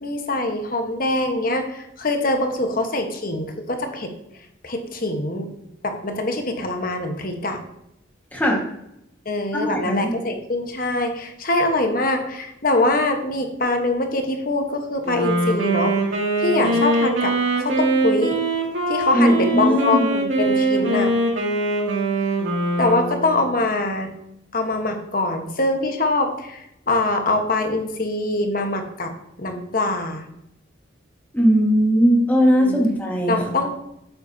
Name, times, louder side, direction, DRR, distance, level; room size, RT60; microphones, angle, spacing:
voice 1, 0.0-4.1 4.6-5.5 5.8-7.6 9.2-15.9 16.4-18.4 18.9-21.1 22.8-24.1 24.5-26.6 26.9-29.1 29.4-30.2 32.6-32.8 33.3-33.8, left 2 dB, 45° left, 5 dB, 1.2 m, -23 dB
voice 2, 9.5-10.1 19.1-20.1 31.3-33.6, equal, 10° left, -2 dB, 1.5 m, -19 dB
Wind instrument woodwind instrument, 15.0-23.7, right 2 dB, 85° right, 2.4 m, -22 dB
9.3 x 8.0 x 2.8 m, 0.81 s
head